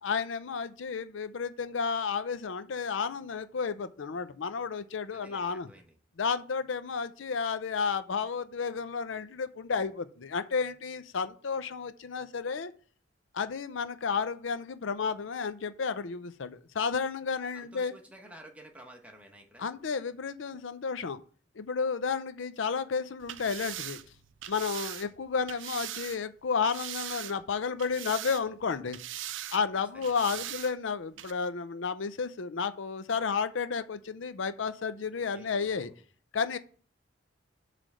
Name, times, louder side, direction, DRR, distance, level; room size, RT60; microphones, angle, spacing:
voice 1, 0.0-5.7 6.2-12.7 13.3-17.9 19.6-21.2 21.6-24.0 24.5-29.0 29.5-35.9 36.3-36.6, left 5 dB, 80° left, 12 dB, 0.5 m, -32 dB
voice 2, 5.1-6.0 17.5-19.7 29.7-30.5 35.1-36.0, right 1 dB, 5° right, 2 dB, 1.1 m, -52 dB
sound 1, 23.2-26.2 26.6-27.5 27.8-28.6 28.9-29.6 30.0-30.7 31.2-31.3, right 12 dB, 75° right, 0.5 m, -40 dB
7.6 x 3.3 x 6.2 m, 0.42 s
head